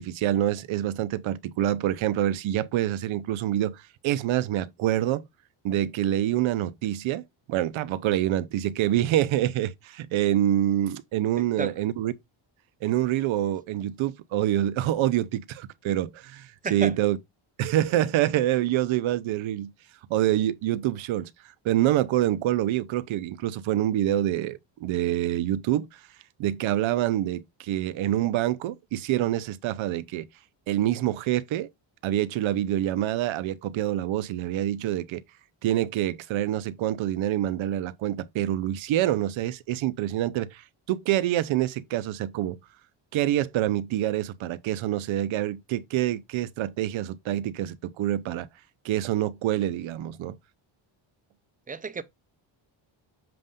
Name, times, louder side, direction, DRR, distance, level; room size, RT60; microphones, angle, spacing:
voice 1, 0.0-5.2 5.6-7.2 7.5-12.1 12.8-17.2 17.6-19.7 20.1-26.0 26.4-30.3 30.7-31.7 32.0-35.2 35.6-42.6 43.1-48.5 48.8-50.4, right 12 dB, 75° right, 0.7 m, -26 dB
voice 2, 51.7-52.0, right 4 dB, 20° right, 0.5 m, -30 dB
7.7 x 2.6 x 5.2 m
cardioid pair, 120°, 47 cm